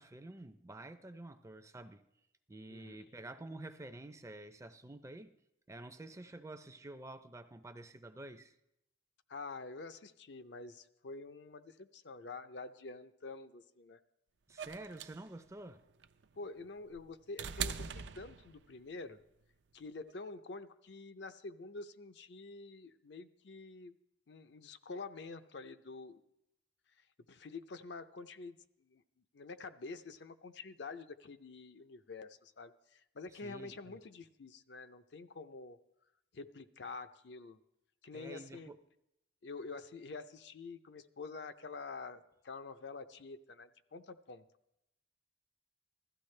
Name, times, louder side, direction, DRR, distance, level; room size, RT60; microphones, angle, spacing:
voice 1, 0.0-2.0 2.5-5.3 5.7-8.5 14.5-15.9 33.4-34.0 38.1-38.8, right 2 dB, 15° right, 0.5 m, -49 dB
voice 2, 9.3-14.0 16.4-19.2 19.7-24.0 24.3-26.2 27.3-29.0 29.3-35.8 36.3-37.6 38.0-38.7 39.4-44.4, left 3 dB, 65° left, 0.6 m, -47 dB
sound 1, 14.6-18.9 20.1-20.2, right 7 dB, 70° right, 0.5 m, -42 dB
16.0 x 13.0 x 3.3 m
head